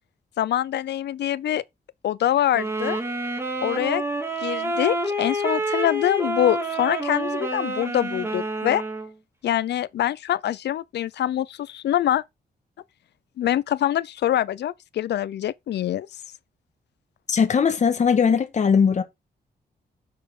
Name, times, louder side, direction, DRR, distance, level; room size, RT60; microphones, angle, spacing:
voice 1, 0.4-1.6 2.0-3.0 3.6-4.0 4.4-8.8 9.4-12.2 13.4-16.1, left 11 dB, 90° left, 0.6 m, -24 dB
sound 1, 2.5-9.1, right 1 dB, 15° right, 2.0 m, -28 dB
voice 2, 17.3-19.0, left 6 dB, 45° left, 1.6 m, -19 dB
10.0 x 6.6 x 3.8 m
wide cardioid pair, 150°, 17 cm